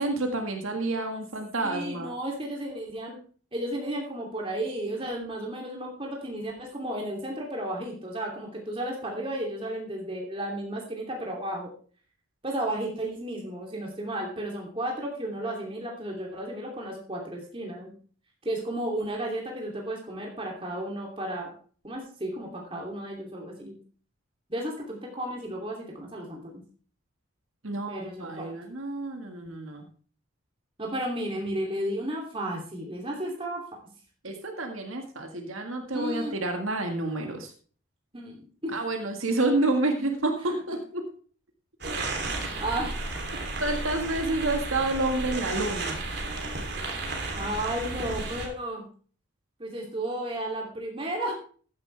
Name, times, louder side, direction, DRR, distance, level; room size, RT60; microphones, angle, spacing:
voice 1, 0.0-2.1 27.6-29.9 34.2-37.5 38.7-41.1 43.6-46.0, right 2 dB, 85° right, 4 dB, 1.8 m, -29 dB
voice 2, 1.6-3.2 3.5-11.7 12.4-17.9 18.4-21.5 21.8-23.7 24.5-26.5 27.9-28.5 30.8-33.6 35.9-36.4 38.1-38.7 40.4-40.6 42.3-42.9 47.3-48.8 49.6-51.3, right 1 dB, 25° right, -1 dB, 2.8 m, -33 dB
sound 1, 41.8-48.5, right 2 dB, 50° right, 3.0 m, -33 dB
14.5 x 10.5 x 3.4 m, 0.43 s
head